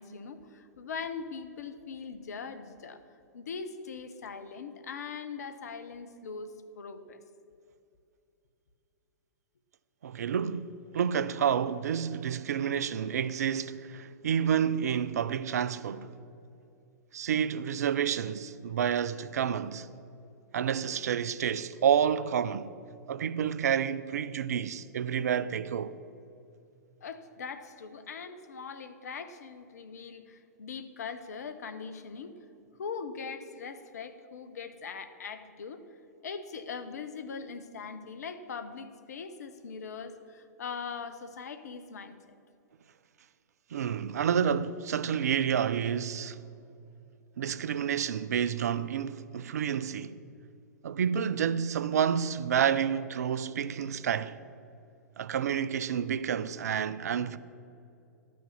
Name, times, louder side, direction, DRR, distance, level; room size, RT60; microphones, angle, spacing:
voice 1, 0.0-3.0 3.3-7.2 27.0-32.3 32.8-35.8 36.2-42.1, left 5 dB, 65° left, 0.9 m, -41 dB
voice 2, 10.0-16.1 17.1-19.9 20.5-22.7 23.1-26.0 43.7-46.4 47.4-50.2 50.8-54.4 55.2-57.4, right 8 dB, 65° right, 0.5 m, -29 dB
12.5 x 6.3 x 7.2 m
figure-of-eight pair, 105°, 9 cm